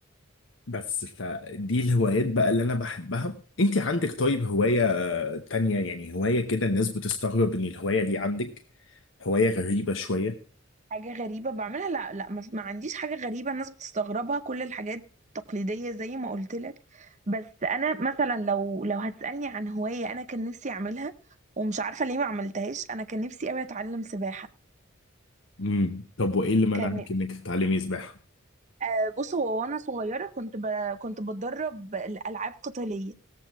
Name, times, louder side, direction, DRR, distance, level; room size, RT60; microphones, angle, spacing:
voice 1, 0.7-8.5 9.2-10.4 25.6-28.1, left 2 dB, 65° left, 0.9 m, -26 dB
voice 2, 10.9-15.0 15.3-21.1 21.6-24.5 26.7-27.0 28.8-33.1, right 3 dB, 35° right, 0.7 m, -31 dB
17.5 x 7.6 x 4.6 m
head